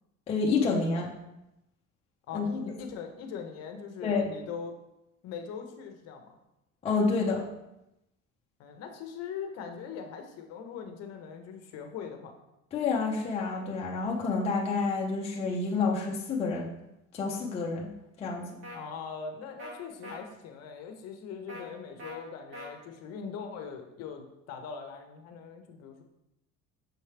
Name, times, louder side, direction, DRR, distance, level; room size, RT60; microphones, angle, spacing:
voice 1, 0.3-1.1 2.3-2.5 4.0-4.3 6.8-7.5 12.7-16.7 17.1-17.9 18.2-18.5, left 4 dB, 20° left, -2 dB, 0.5 m, -28 dB
voice 2, 2.3-4.7 5.2-6.4 8.6-12.3 18.7-26.0, left 6 dB, 50° left, 5 dB, 0.7 m, -41 dB
sound 1, 18.6-18.8 19.6-19.7 20.0-20.2 21.5-21.6 22.0-22.2 22.5-22.7, equal, 40° right, 1.1 m, -42 dB
6.4 x 4.5 x 3.3 m, 0.89 s
cardioid pair, 175°, 32 cm